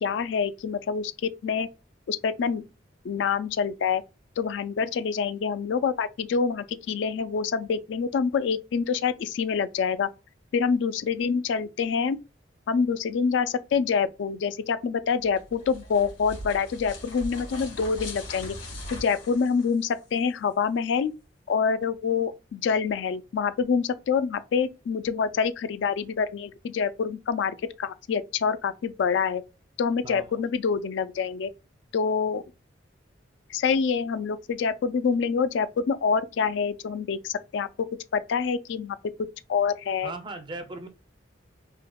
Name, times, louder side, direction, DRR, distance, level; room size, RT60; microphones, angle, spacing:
voice 1, 0.0-1.7 2.1-2.6 3.0-4.0 4.4-10.1 10.5-12.2 12.7-18.6 18.9-21.1 21.5-29.4 29.8-31.5 31.9-32.4 33.5-37.7 38.1-39.0 39.5-40.1, left 6 dB, 70° left, 0.3 m, -26 dB
sound 1, 15.2-20.2, left 1 dB, 85° left, 1.7 m, -40 dB
voice 2, 30.0-30.4 40.0-40.9, right 2 dB, 25° right, 0.4 m, -38 dB
3.5 x 2.7 x 2.2 m
head